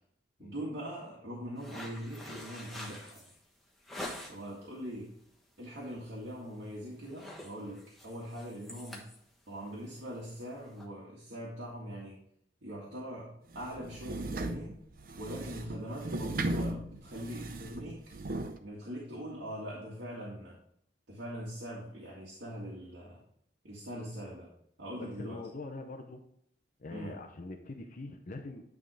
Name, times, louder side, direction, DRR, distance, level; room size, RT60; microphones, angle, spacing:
voice 1, 0.4-3.2 4.3-5.1 5.6-9.1 9.5-12.2 12.6-14.8 15.1-18.0 18.6-20.6 21.1-23.2 23.6-24.5 24.8-25.4 26.9-27.1, equal, 75° right, -6 dB, 1.9 m, -42 dB
sound 1, 1.6-4.6 5.0-5.4 5.7-5.9 6.3-6.7 6.9-10.8, left 1 dB, ahead, 1.2 m, -46 dB
sound 2, 13.5-18.6, right 2 dB, 50° right, 0.6 m, -37 dB
voice 2, 25.0-26.2 26.8-28.6, left 2 dB, 45° left, 4 dB, 0.7 m, -43 dB
9.7 x 3.6 x 5.0 m, 0.69 s
head